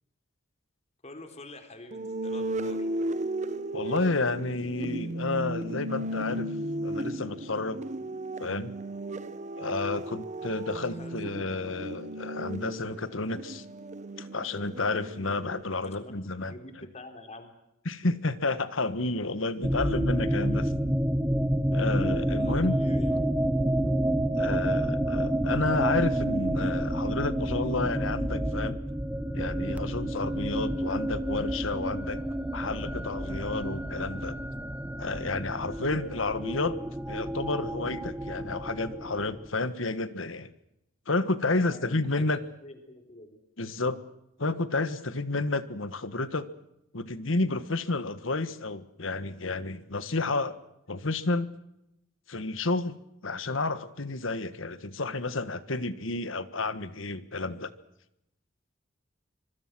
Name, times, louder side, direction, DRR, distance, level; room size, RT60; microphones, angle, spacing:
voice 1, 1.0-2.9 10.9-11.2 15.7-17.5 22.3-23.8 41.5-43.4, left 2 dB, 35° left, 6 dB, 3.8 m, -48 dB
sound 1, 1.9-15.6, right 1 dB, 40° right, 1.0 m, -35 dB
voice 2, 3.7-6.5 6.8-7.8 8.4-8.7 9.6-13.6 14.2-16.5 17.8-20.7 21.7-22.8 24.4-28.8 29.3-32.2 32.5-34.4 35.0-36.8 37.1-40.5 41.1-42.4 43.6-44.0 44.4-46.5 46.9-50.6 50.9-51.5 52.3-53.0 53.2-57.7, left 3 dB, 75° left, 13 dB, 1.5 m, -31 dB
sound 2, 19.6-39.5, right 1 dB, 10° right, 1.0 m, -29 dB
25.0 x 24.5 x 6.2 m, 0.83 s
head